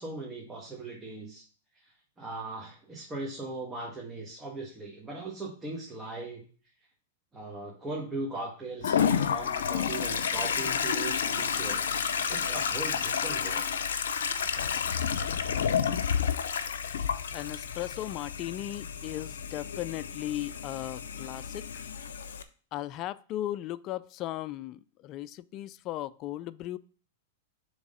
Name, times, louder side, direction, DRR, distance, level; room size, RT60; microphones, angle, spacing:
voice 1, 0.0-1.4 1.8-1.9 2.2-6.4 7.3-13.6, right 2 dB, 15° right, 1.5 m, -39 dB
Toilet flush, 8.8-22.4, left 7 dB, 80° left, 0.6 m, -30 dB
voice 2, 17.3-21.7 22.7-26.8, left 14 dB, 40° left, 0.4 m, -37 dB
7.1 x 3.6 x 5.3 m
hypercardioid pair, 120°, 0 cm